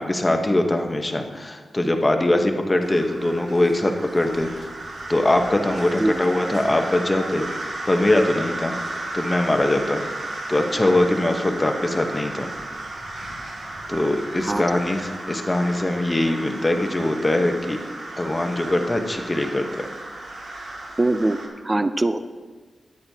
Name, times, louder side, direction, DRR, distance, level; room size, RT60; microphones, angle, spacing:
voice 1, 0.0-4.7 5.1-7.5 7.8-8.8 9.1-10.0 10.5-12.5 13.9-15.0 15.3-17.8 18.2-19.7, left 1 dB, 20° left, 4 dB, 0.9 m, -22 dB
sound 1, 2.8-21.5, right 2 dB, 65° right, 2.1 m, -34 dB
voice 2, 21.0-22.2, right 2 dB, 20° right, 11 dB, 0.4 m, -22 dB
13.5 x 10.5 x 2.8 m, 1.4 s
wide cardioid pair, 165°, 0 cm